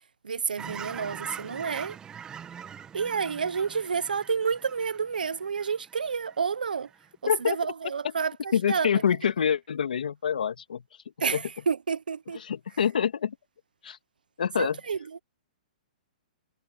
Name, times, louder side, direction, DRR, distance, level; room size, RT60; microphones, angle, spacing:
voice 1, 0.2-2.0 2.9-6.9 7.2-8.9 11.2-12.4 14.6-15.0, right 6 dB, 90° right, 1.0 m, -29 dB
Fowl / Chirp tweet, 0.6-6.4 6.8-7.0, right 8 dB, 15° right, 1.7 m, -43 dB
voice 2, 7.3-7.6 8.5-10.8 11.3-11.4 12.4-13.4 13.8-14.0 14.4-14.8, left 8 dB, 80° left, 2.1 m, -26 dB
hypercardioid pair, 135°, 5 cm